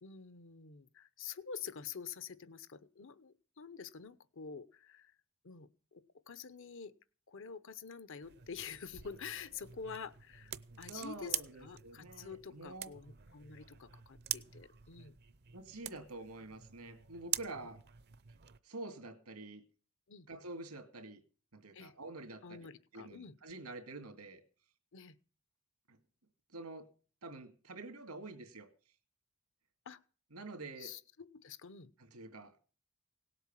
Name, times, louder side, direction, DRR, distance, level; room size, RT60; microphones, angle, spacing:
voice 1, 0.0-5.1 5.4-6.9 7.3-11.3 11.6-15.1 20.1-20.3 21.7-21.9 22.4-23.3 24.9-25.2 29.9-30.0 30.8-31.9, left 6 dB, 60° left, 14 dB, 0.9 m, -48 dB
sound 1, 8.2-18.6, right 12 dB, 50° right, 0.7 m, -45 dB
voice 2, 10.7-12.9 15.5-17.8 18.6-19.6 20.3-21.2 21.5-24.4 25.9-26.0 26.5-26.9 27.2-28.7 30.3-30.9 32.0-32.5, right 2 dB, 90° right, 8 dB, 2.5 m, -47 dB
18.0 x 8.1 x 7.4 m, 0.40 s
head